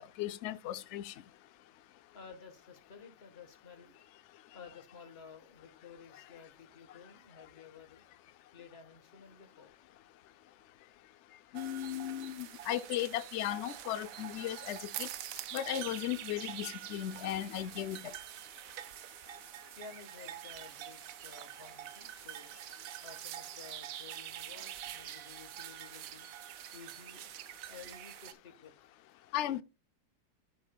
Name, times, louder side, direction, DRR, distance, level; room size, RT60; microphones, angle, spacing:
voice 1, 0.2-1.1 11.5-15.1 15.5-18.0 29.3-29.6, left 12 dB, 85° left, 0.6 m, -36 dB
voice 2, 2.1-4.0 4.5-8.0 8.5-9.7 19.8-22.6 23.0-26.3 26.7-27.3 27.6-28.7, left 5 dB, 40° left, 1.4 m, -53 dB
sound 1, 11.5-28.3, right 12 dB, 70° right, 0.9 m, -45 dB
13.5 x 5.6 x 2.2 m
omnidirectional pair, 1.8 m